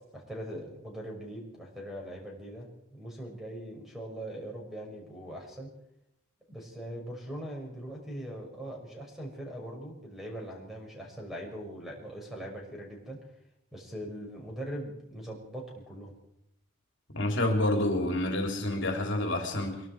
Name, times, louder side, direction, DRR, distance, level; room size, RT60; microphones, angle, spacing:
voice 1, 0.1-5.7 6.5-13.2 13.7-16.1, right 1 dB, ahead, 0 dB, 6.0 m, -41 dB
voice 2, 17.1-19.8, left 1 dB, 60° left, 2 dB, 3.4 m, -28 dB
24.0 x 23.0 x 4.8 m, 0.81 s
head